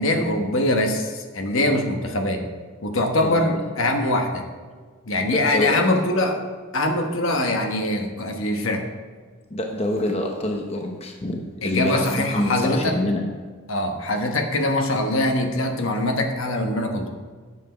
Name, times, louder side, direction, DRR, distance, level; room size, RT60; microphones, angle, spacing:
voice 1, 0.0-2.4 2.8-4.4 5.0-6.4 6.7-8.8 11.6-13.0 13.7-17.1, left 1 dB, 65° left, 4 dB, 1.2 m, -23 dB
voice 2, 3.2-3.7 5.2-5.8 9.5-13.2, left 1 dB, 30° left, 2 dB, 0.8 m, -26 dB
9.8 x 7.2 x 5.0 m, 1.5 s
head